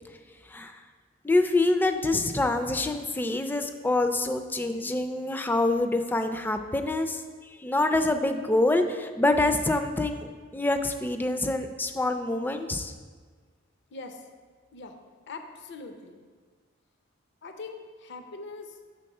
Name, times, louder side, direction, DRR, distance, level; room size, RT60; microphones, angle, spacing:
voice 1, 1.2-12.9, left 2 dB, 10° left, 7 dB, 0.3 m, -26 dB
voice 2, 13.9-14.2 14.7-15.0 15.3-16.2 17.4-18.8, left 3 dB, 60° left, 6 dB, 0.6 m, -42 dB
6.4 x 4.0 x 5.4 m, 1.5 s
head